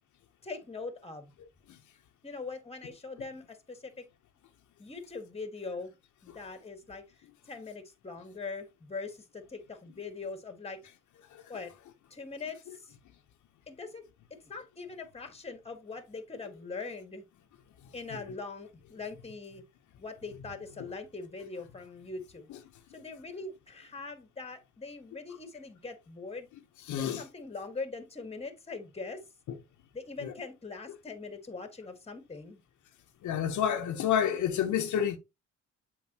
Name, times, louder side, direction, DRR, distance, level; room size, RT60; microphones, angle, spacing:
voice 1, 0.4-1.3 2.2-4.0 4.8-5.9 6.2-7.0 7.5-10.8 11.5-11.7 12.1-12.9 13.7-14.0 14.4-17.2 17.9-19.6 20.0-22.5 22.9-26.5 27.0-29.2 29.9-32.6, left 4 dB, 20° left, 1.7 m, -42 dB
voice 2, 26.9-27.2 30.2-30.3 33.2-35.2, left 9 dB, 75° left, 1.0 m, -29 dB
7.3 x 5.1 x 3.0 m
cardioid pair, 90°, 30 cm